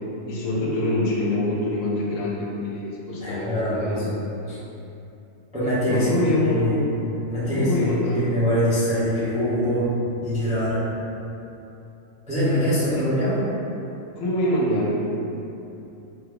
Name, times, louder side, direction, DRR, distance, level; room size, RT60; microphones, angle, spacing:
voice 1, 0.3-4.1 5.9-6.9 7.5-8.3 13.0-13.1 14.2-15.1, left 1 dB, 75° left, -4 dB, 1.0 m, -25 dB
voice 2, 3.2-4.1 4.5-4.6 5.5-6.1 6.4-6.8 7.3-10.8 12.3-13.5, equal, 10° right, -11 dB, 0.4 m, -23 dB
2.8 x 2.3 x 3.4 m, 2.8 s
omnidirectional pair, 1.4 m